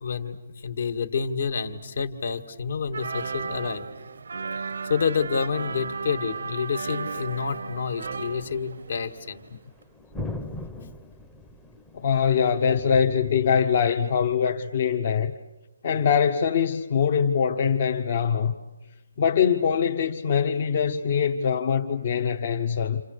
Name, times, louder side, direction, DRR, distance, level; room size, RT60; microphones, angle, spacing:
voice 1, 0.0-3.8 4.6-9.4, left 6 dB, 55° left, 2.0 m, -29 dB
sound 1, 2.9-9.5 9.8-9.9, right 5 dB, 70° right, 0.8 m, -35 dB
sound 2, 7.2-14.4, left 2 dB, 5° left, 0.8 m, -42 dB
voice 2, 11.9-15.3 15.8-18.5 19.2-23.0, left 7 dB, 40° left, 1.0 m, -23 dB
29.5 x 27.5 x 6.7 m
hypercardioid pair, 170°, 0 cm